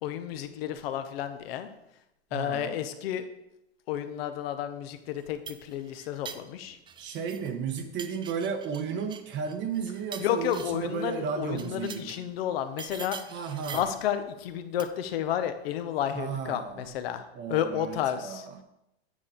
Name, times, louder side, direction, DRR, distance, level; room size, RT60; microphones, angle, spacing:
voice 1, 0.0-1.7 2.3-3.3 3.9-6.8 10.2-13.2 13.6-18.5, left 10 dB, 65° left, 1.0 m, -31 dB
voice 2, 2.3-2.8 7.0-12.2 13.3-13.9 16.1-16.9 17.3-18.6, right 6 dB, 35° right, 0.9 m, -34 dB
sound 1, 5.1-7.5 7.8-10.9 11.5-12.3 12.8-14.0 14.8-15.1, right 7 dB, 15° right, 0.4 m, -44 dB
9.3 x 6.5 x 3.8 m
hypercardioid pair, 105°, 32 cm